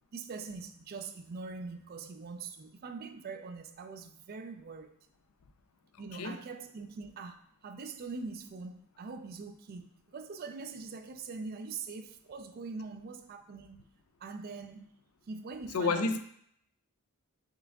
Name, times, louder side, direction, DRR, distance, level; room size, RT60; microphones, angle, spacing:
voice 1, 0.1-4.9 6.0-13.9 14.2-14.9 15.3-16.2, right 4 dB, 45° right, 0.3 m, -43 dB
voice 2, 15.7-16.2, left 4 dB, 80° left, 0.4 m, -29 dB
5.5 x 3.5 x 2.3 m
head